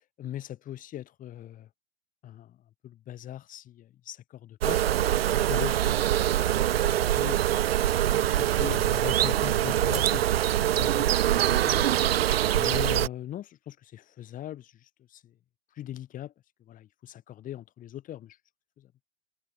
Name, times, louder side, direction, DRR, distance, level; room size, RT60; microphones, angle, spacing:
voice 1, 0.2-1.7 2.2-2.6 2.8-4.8 5.4-6.0 6.6-7.5 8.2-10.3 10.8-11.9 12.5-15.3 15.7-16.3 16.7-18.4 18.8-18.9, left 12 dB, 25° left, 1.8 m, -40 dB
sound 1, 4.6-13.1, right 12 dB, 60° right, 0.6 m, -24 dB
figure-of-eight pair, 95°, 34 cm